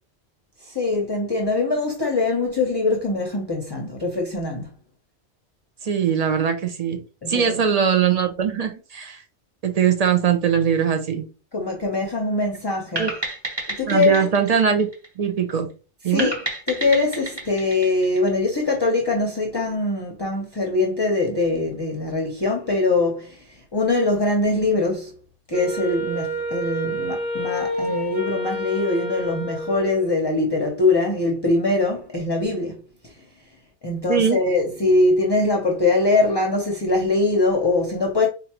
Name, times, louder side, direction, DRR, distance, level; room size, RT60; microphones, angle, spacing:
voice 1, 0.6-4.7 7.2-7.6 11.5-13.0 13.8-14.3 16.1-16.3 16.7-25.1 25.5-32.8 33.0-33.1 33.8-38.3, left 2 dB, 30° left, 0.6 m, -22 dB
voice 2, 5.8-7.0 7.3-9.2 9.6-11.3 13.0-13.1 13.9-14.9 15.2-15.7 16.0-16.3 34.1-34.4, right 7 dB, 45° right, 0.5 m, -21 dB
sound 1, 13.0-15.5 16.2-18.7, right 2 dB, 25° right, 1.0 m, -31 dB
Wind instrument woodwind instrument, 25.5-30.2, equal, 65° right, 1.6 m, -28 dB
4.5 x 2.5 x 2.9 m
omnidirectional pair, 1.2 m